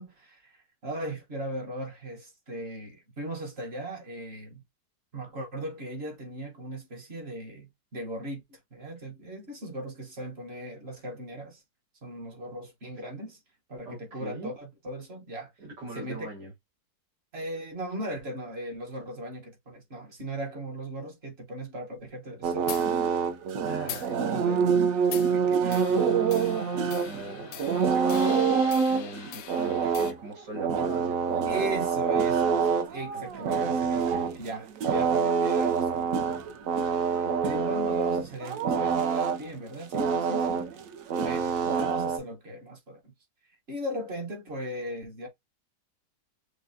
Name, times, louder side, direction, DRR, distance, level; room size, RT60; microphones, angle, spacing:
voice 1, 0.0-4.6 5.1-11.6 12.0-13.4 13.7-15.5 15.9-16.3 17.3-22.7 23.9-24.7 29.8-29.9 31.5-34.1 34.3-36.2 37.0-40.7 41.2-43.1 43.7-45.3, right 1 dB, 40° right, 1.2 m, -38 dB
voice 2, 13.9-14.5 15.6-16.5 23.6-24.8 25.3-31.7 33.1-34.3, right 2 dB, 85° right, 2.5 m, -41 dB
sound 1, 22.4-39.4 39.9-42.2, right 6 dB, 65° right, 1.0 m, -26 dB
sound 2, 22.7-22.9 23.9-24.1 25.1-25.3 25.7-30.1, left 10 dB, 80° left, 1.2 m, -41 dB
6.5 x 2.2 x 2.6 m
omnidirectional pair, 1.8 m